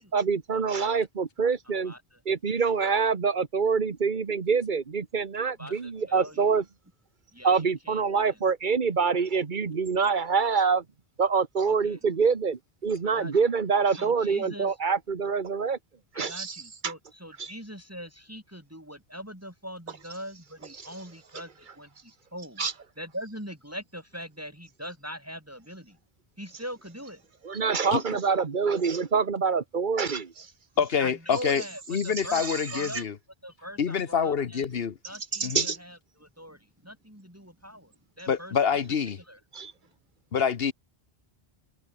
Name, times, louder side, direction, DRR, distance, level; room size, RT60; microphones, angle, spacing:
voice 1, 0.0-1.9 2.3-6.6 7.4-10.8 11.2-15.8 16.2-16.6 16.8-16.9 17.4-17.5 22.6-22.7 27.4-30.5 35.4-35.8 39.5-39.7, right 5 dB, 50° right, 1.4 m, -26 dB
voice 2, 0.5-1.1 1.8-2.2 5.4-6.5 7.3-8.4 11.7-12.0 13.0-13.4 13.9-14.8 16.1-22.7 23.0-26.0 26.4-27.2 30.8-33.1 33.4-34.7 35.0-38.8 39.2-39.4, equal, 15° right, 7.1 m, -42 dB
voice 3, 30.8-31.6 31.9-33.1 33.8-35.0 35.4-35.7 38.3-39.2 40.3-40.7, left 7 dB, 70° left, 1.3 m, -26 dB
omnidirectional pair, 1.0 m